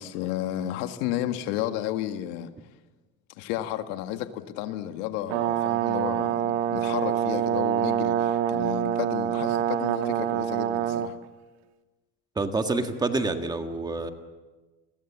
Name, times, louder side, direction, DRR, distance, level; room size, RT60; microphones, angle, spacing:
voice 1, 0.0-2.5 3.4-11.2, left 12 dB, 75° left, 1.9 m, -32 dB
Brass instrument, 5.3-11.1, right 10 dB, 85° right, 1.7 m, -26 dB
voice 2, 12.3-14.1, right 3 dB, 15° right, 1.7 m, -27 dB
29.5 x 22.0 x 7.4 m
cardioid pair, 150°, 31 cm